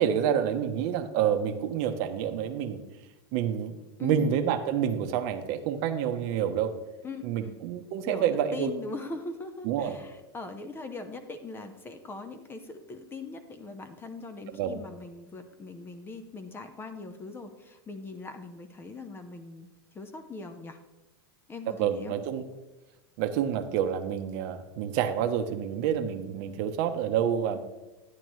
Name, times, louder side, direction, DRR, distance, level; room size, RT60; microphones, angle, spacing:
voice 1, 0.0-2.8 3.3-6.7 7.2-8.7 9.6-10.0 14.5-14.8 21.8-22.4 23.2-27.6, right 9 dB, 50° right, 8 dB, 0.9 m, -28 dB
voice 2, 7.0-7.5 8.1-19.7 19.9-20.8 21.5-22.1, left 3 dB, 15° left, 9 dB, 0.7 m, -41 dB
10.5 x 9.8 x 3.1 m, 1.1 s
supercardioid pair, 130°, 13 cm